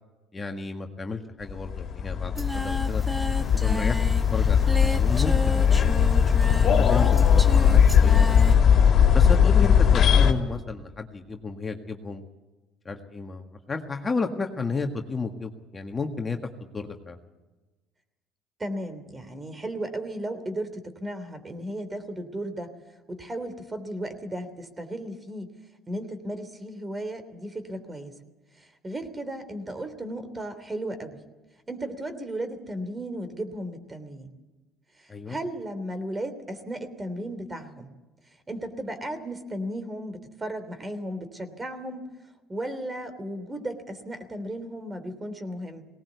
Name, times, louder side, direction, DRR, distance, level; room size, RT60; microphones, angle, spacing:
voice 1, 0.3-3.0 3.5-4.0 4.3-5.9 6.4-8.6 9.1-12.2 12.9-17.2 35.1-35.4, left 4 dB, 25° left, 4 dB, 1.8 m, -32 dB
sound 1, 1.5-10.3, left 7 dB, 55° left, 2.6 m, -19 dB
Singing, 2.4-8.6, equal, 5° right, 1.8 m, -34 dB
voice 2, 18.6-22.7 23.1-25.5 25.9-28.2 28.5-31.2 31.7-34.3 35.0-37.9 38.5-42.1 42.5-45.9, right 1 dB, 20° right, 10 dB, 3.2 m, -35 dB
19.0 x 18.5 x 8.3 m, 1.1 s
supercardioid pair, 80°, 0 cm